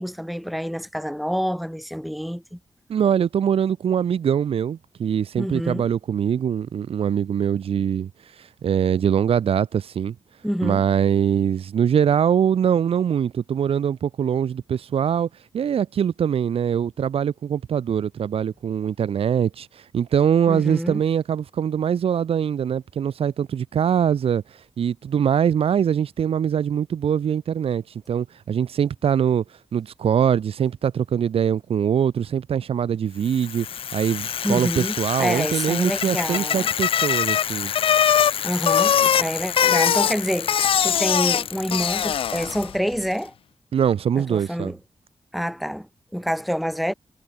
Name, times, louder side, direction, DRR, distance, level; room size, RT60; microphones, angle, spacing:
voice 1, 0.0-2.6 5.4-5.9 10.4-10.8 20.5-21.0 34.4-36.7 38.4-43.3 44.2-44.8 45.3-46.9, equal, ahead, 6.1 m, -27 dB
voice 2, 2.9-8.1 8.4-10.1 10.6-15.3 15.5-24.4 24.8-29.4 29.7-33.7 33.9-37.7 43.7-44.7, right 8 dB, 80° right, 1.4 m, -23 dB
Bicycle, 33.3-42.8, left 9 dB, 70° left, 0.5 m, -23 dB
wide cardioid pair, 130°, 10 cm